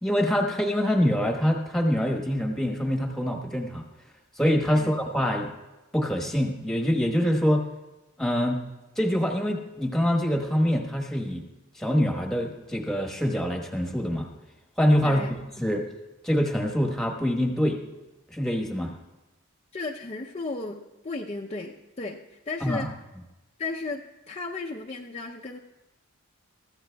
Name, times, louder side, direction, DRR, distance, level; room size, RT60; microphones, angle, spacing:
voice 1, 0.0-3.9 4.4-5.5 5.9-7.6 8.2-8.6 9.0-11.4 11.8-14.3 14.8-15.9 16.2-17.8 18.3-18.9 22.6-22.9, equal, ahead, 2 dB, 1.2 m, -25 dB
voice 2, 15.0-15.3 19.7-22.2 22.5-22.9 23.6-25.6, left 3 dB, 30° left, -1 dB, 0.6 m, -34 dB
22.0 x 15.0 x 2.3 m, 1.1 s
head